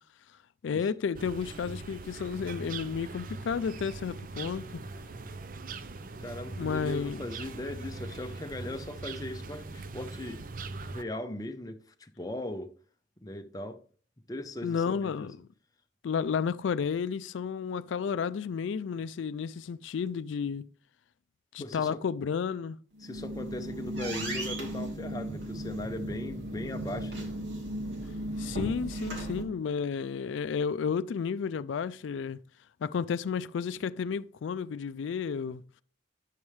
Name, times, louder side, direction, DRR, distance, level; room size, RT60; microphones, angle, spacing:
voice 1, 0.6-4.8 6.6-7.2 14.6-15.5 16.0-20.7 21.5-22.8 28.4-32.4 32.8-35.6, left 6 dB, 85° left, 0.4 m, -32 dB
sound 1, 1.1-11.0, right 3 dB, 45° right, 0.5 m, -41 dB
voice 2, 6.2-10.4 10.8-12.7 13.2-13.8 14.3-15.3 21.6-22.0 23.0-27.3, left 1 dB, 20° left, 0.6 m, -39 dB
sound 2, 22.9-29.4, right 1 dB, 75° right, 2.6 m, -36 dB
9.9 x 7.1 x 3.2 m
head